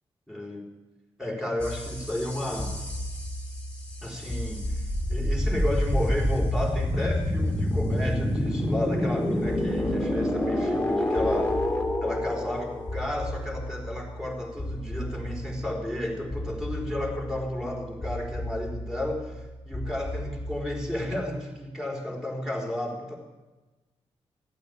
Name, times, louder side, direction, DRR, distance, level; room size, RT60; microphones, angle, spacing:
voice 1, 0.3-0.6 1.2-2.7 4.0-11.6 12.0-23.1, left 1 dB, 5° right, -1 dB, 4.5 m, -32 dB
sound 1, 1.6-21.2, left 1 dB, 10° left, 2.8 m, -29 dB
14.0 x 8.6 x 8.6 m, 1.2 s
cardioid pair, 65°, 11 cm